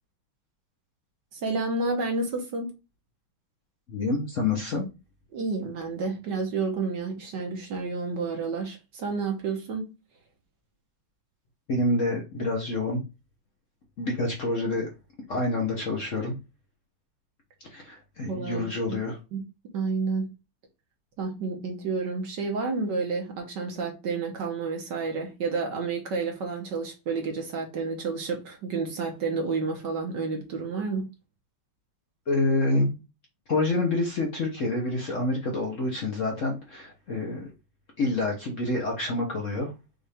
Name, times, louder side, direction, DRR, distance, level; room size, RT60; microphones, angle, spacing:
voice 1, 1.3-2.7 5.3-9.9 18.3-19.0 19.3-19.4 19.7-20.3 21.2-31.1, right 4 dB, 60° right, 1.6 m, -30 dB
voice 2, 3.9-4.8 11.7-13.0 14.0-14.9 15.3-16.4 17.6-19.2 32.3-33.0 33.5-37.5 38.0-39.7, left 2 dB, 50° left, 1.0 m, -27 dB
5.6 x 2.6 x 3.5 m
omnidirectional pair, 2.3 m